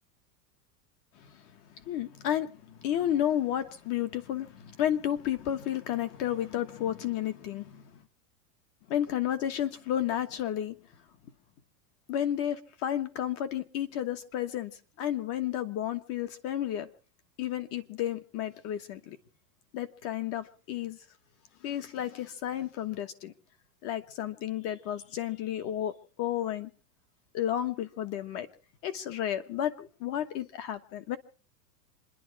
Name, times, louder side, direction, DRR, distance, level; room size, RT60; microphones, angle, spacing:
voice 1, 1.8-8.0 8.9-10.7 12.1-14.7 15.0-16.9 17.4-19.2 19.7-21.0 21.6-23.3 23.8-25.9 26.2-26.7 27.3-28.5 28.8-31.2, left 11 dB, 30° left, 1.2 m, -32 dB
27.5 x 11.0 x 4.7 m
supercardioid pair, 170°, 47 cm